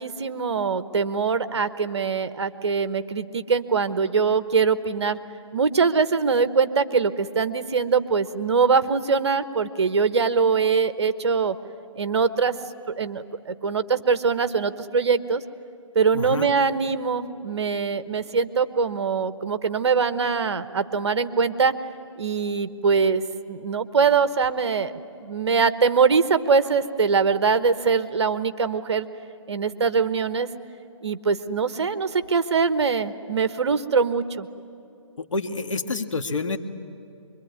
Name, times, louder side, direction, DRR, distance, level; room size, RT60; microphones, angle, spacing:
voice 1, 0.0-5.2 5.5-11.6 12.0-12.5 13.0-15.4 15.9-21.7 22.2-24.9 25.2-29.1 29.5-30.5 31.0-34.5, right 5 dB, 55° right, 12 dB, 1.1 m, -23 dB
voice 2, 16.1-16.5 35.2-36.6, left 3 dB, 70° left, 6 dB, 1.8 m, -28 dB
25.0 x 23.0 x 9.6 m, 2.7 s
hypercardioid pair, 160°, 17 cm